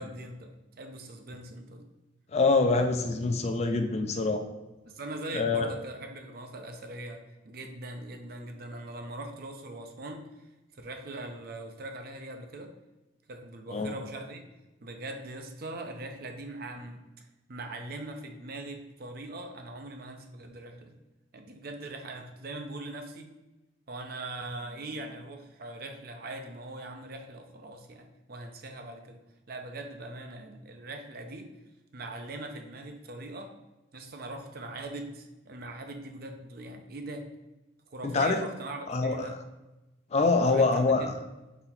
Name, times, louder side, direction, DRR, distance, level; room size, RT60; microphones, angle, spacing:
voice 1, 0.0-1.8 4.8-10.2 10.8-12.7 13.3-14.4 14.8-17.0 17.5-20.9 21.3-23.3 23.9-29.2 29.5-31.5 31.9-33.5 33.9-37.3 37.9-39.4 40.2-41.1, right 2 dB, 50° right, 4 dB, 0.5 m, -41 dB
voice 2, 2.3-4.4 5.3-5.7 13.7-14.0 38.0-38.4 38.9-39.4 40.1-41.1, left 3 dB, 35° left, 6 dB, 0.4 m, -25 dB
4.0 x 2.8 x 4.2 m, 1.0 s
head